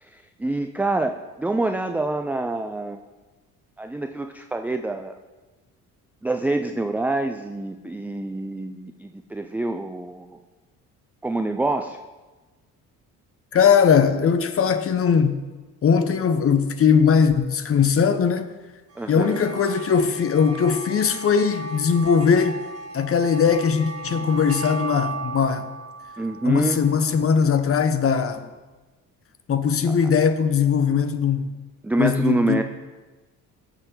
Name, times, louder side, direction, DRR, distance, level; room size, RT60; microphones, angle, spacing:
voice 1, 0.0-3.0 3.8-5.2 6.2-10.4 11.2-12.0 19.0-19.4 26.2-26.8 31.8-32.6, right 2 dB, 5° right, 0.4 m, -26 dB
voice 2, 13.5-15.4 15.8-18.5 19.1-22.6 22.9-25.6 26.4-28.5 29.5-31.5 32.0-32.6, left 6 dB, 30° left, 1.0 m, -20 dB
sound 1, 18.9-27.5, right 3 dB, 30° right, 1.8 m, -36 dB
17.5 x 6.8 x 3.8 m
figure-of-eight pair, 50°, 45 cm